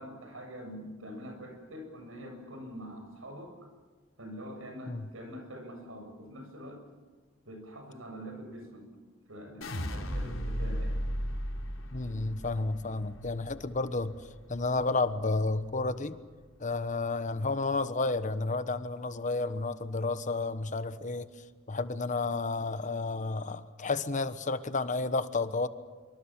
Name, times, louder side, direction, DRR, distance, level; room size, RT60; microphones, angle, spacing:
voice 1, 0.0-3.7 4.2-6.8 7.5-8.9 9.3-11.0, equal, 85° right, 4 dB, 7.5 m, -44 dB
sound 1, 9.6-15.8 16.2-16.8, equal, 80° left, 4.3 m, -36 dB
voice 2, 11.9-14.1 14.5-16.2 16.6-21.3 21.7-25.7, left 3 dB, 40° left, 12 dB, 1.2 m, -31 dB
25.5 x 24.5 x 7.4 m, 1.4 s
head